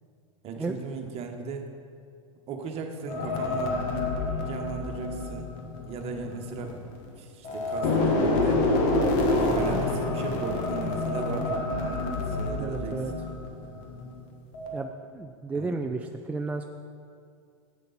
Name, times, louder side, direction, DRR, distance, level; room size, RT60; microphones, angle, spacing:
voice 1, 0.4-1.7 2.5-4.1 4.5-5.5 5.8-6.8 7.2-8.6 9.2-13.0 15.5-15.7, right 4 dB, 35° right, 3 dB, 1.4 m, -37 dB
sound 1, 3.1-7.1 7.4-14.2 14.5-14.8, left 2 dB, 50° left, 1.6 m, -28 dB
voice 2, 12.6-13.1 14.7-16.6, right 3 dB, 10° right, 4 dB, 0.4 m, -33 dB
11.5 x 8.3 x 4.3 m, 2.3 s
hypercardioid pair, 110°, 17 cm